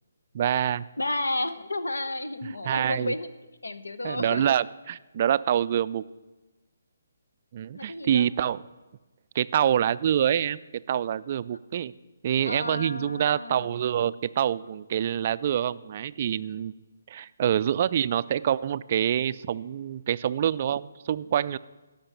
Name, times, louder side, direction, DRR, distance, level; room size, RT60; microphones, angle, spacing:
voice 1, 0.3-0.9 2.7-3.1 4.0-6.0 7.5-8.6 9.3-11.9 12.2-16.7 17.1-21.6, right 10 dB, 40° right, 16 dB, 0.3 m, -26 dB
voice 2, 1.0-3.3 3.6-4.5 7.7-8.3 12.4-13.8, left 2 dB, 75° left, 13 dB, 0.8 m, -32 dB
11.5 x 5.8 x 8.3 m, 1.1 s
figure-of-eight pair, 140°, 0 cm